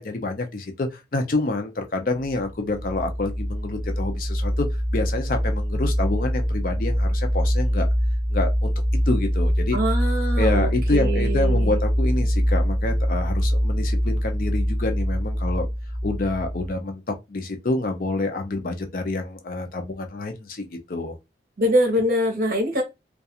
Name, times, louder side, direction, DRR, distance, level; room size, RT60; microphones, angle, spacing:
voice 1, 0.0-4.7 4.9-7.9 8.3-8.7 9.1-9.8 10.4-15.7 16.0-21.2, left 2 dB, 50° left, 0.5 m, -27 dB
sound 1, 2.2-16.7, equal, 15° left, 0.7 m, -23 dB
voice 2, 9.7-11.8 21.6-22.8, equal, 50° right, 0.9 m, -24 dB
2.4 x 2.3 x 2.7 m
head